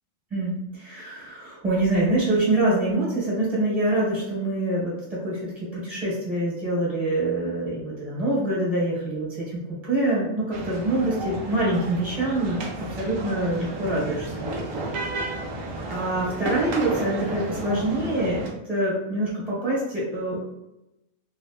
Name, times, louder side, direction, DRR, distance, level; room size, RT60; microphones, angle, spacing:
voice 1, 0.3-14.5 15.9-20.4, right 1 dB, ahead, -7 dB, 0.9 m, -25 dB
sound 1, 10.5-18.5, right 2 dB, 75° right, 1.0 m, -33 dB
3.1 x 2.1 x 2.4 m, 0.91 s
omnidirectional pair, 1.4 m